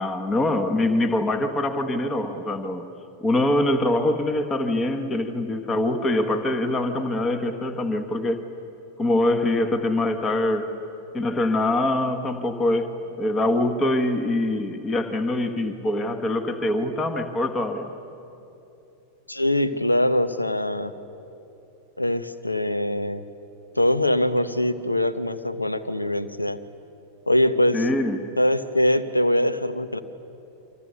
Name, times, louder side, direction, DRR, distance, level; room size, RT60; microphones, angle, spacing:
voice 1, 0.0-2.9 3.2-8.4 9.0-10.7 11.1-17.9 27.7-28.2, left 1 dB, 20° left, 9 dB, 1.5 m, -24 dB
voice 2, 19.3-20.9 22.0-23.2 23.7-26.6 27.3-27.8 28.4-30.0, left 1 dB, 85° left, 11 dB, 1.0 m, -23 dB
28.5 x 25.5 x 6.8 m, 2.9 s
figure-of-eight pair, 90°, 0 cm